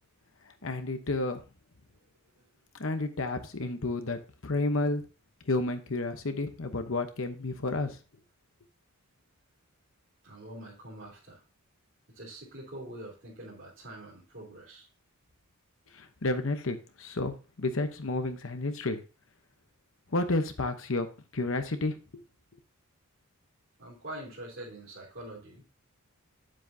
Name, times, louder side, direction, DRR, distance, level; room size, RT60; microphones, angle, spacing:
voice 1, 0.6-1.4 2.8-5.0 5.5-8.0 15.9-19.0 20.1-21.1 21.3-22.2, left 2 dB, 60° left, 8 dB, 0.9 m, -31 dB
voice 2, 10.2-11.4 12.1-14.9 23.8-25.6, right 1 dB, 55° right, -6 dB, 3.3 m, -45 dB
9.7 x 7.6 x 2.7 m, 0.32 s
head